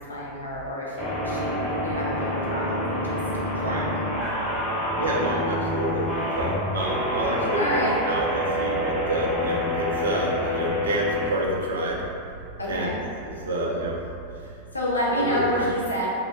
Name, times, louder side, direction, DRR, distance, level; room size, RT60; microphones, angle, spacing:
voice 1, 0.1-3.2 3.6-3.8 7.5-8.0 12.6-13.0 14.7-16.1, equal, 80° left, -5 dB, 0.5 m, -28 dB
sound 1, 1.0-11.3, left 1 dB, 5° left, 0.9 m, -27 dB
voice 2, 5.0-6.1 6.3-12.0 12.6-12.9 13.2-14.0 14.4-14.5 15.1-15.7, right 1 dB, 65° right, -2 dB, 0.4 m, -28 dB
2.2 x 2.0 x 3.0 m, 2.4 s
figure-of-eight pair, 90°, 0 cm